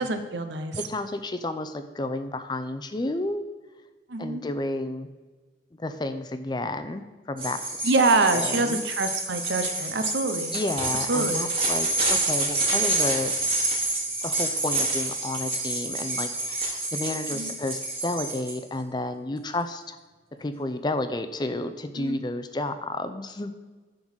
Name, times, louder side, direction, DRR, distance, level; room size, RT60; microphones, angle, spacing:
voice 1, 0.0-0.8 4.1-4.4 7.8-10.6 11.1-11.5 17.3-17.5 22.0-22.2, right 3 dB, 80° right, 8 dB, 0.8 m, -25 dB
voice 2, 0.8-3.4 4.2-5.1 5.8-7.9 8.3-8.8 10.5-13.3 14.2-20.0 20.4-23.5, left 2 dB, 25° left, 10 dB, 0.4 m, -31 dB
sound 1, 7.4-18.5, right 2 dB, 30° right, 2.3 m, -28 dB
10.5 x 3.9 x 6.2 m, 1.3 s
head